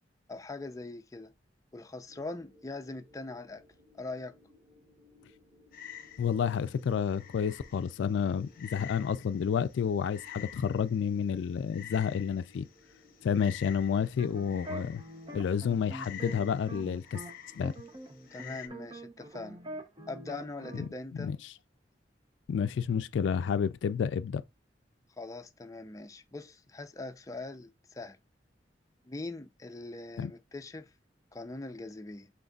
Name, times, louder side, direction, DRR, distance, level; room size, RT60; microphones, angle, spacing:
voice 1, 0.3-1.3 1.7-3.6 4.0-4.3 18.3-19.6 20.1-21.3 25.2-28.2 29.0-30.9 31.3-32.3, left 2 dB, 20° left, 0.5 m, -42 dB
sound 1, 2.1-19.0, left 1 dB, 60° right, 2.8 m, -63 dB
Frog, 5.7-18.7, left 9 dB, 55° left, 0.7 m, -50 dB
voice 2, 6.2-12.7 13.2-15.0 15.3-17.2 17.5-17.7 20.7-20.9 21.1-21.5 22.5-24.4 30.2-30.3, left 7 dB, 85° left, 0.3 m, -30 dB
sound 2, 14.0-17.3 17.6-20.9, right 1 dB, 25° right, 0.7 m, -44 dB
5.8 x 3.9 x 2.3 m
head